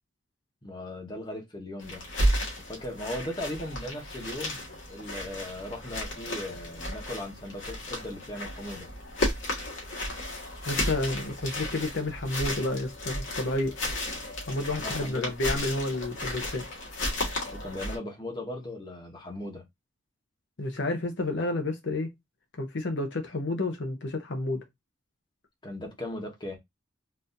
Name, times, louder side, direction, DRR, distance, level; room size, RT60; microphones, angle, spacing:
voice 1, 0.6-2.1 2.6-4.6 4.9-8.9 14.8-15.3 17.5-19.6 25.6-26.6, left 1 dB, 25° left, 1.0 m, -38 dB
sound 1, 1.8-18.0, left 1 dB, 85° left, 1.7 m, -33 dB
voice 2, 10.7-13.8 14.5-16.6 20.6-22.1 22.6-24.6, left 2 dB, 65° left, 0.7 m, -30 dB
4.0 x 2.6 x 2.5 m
head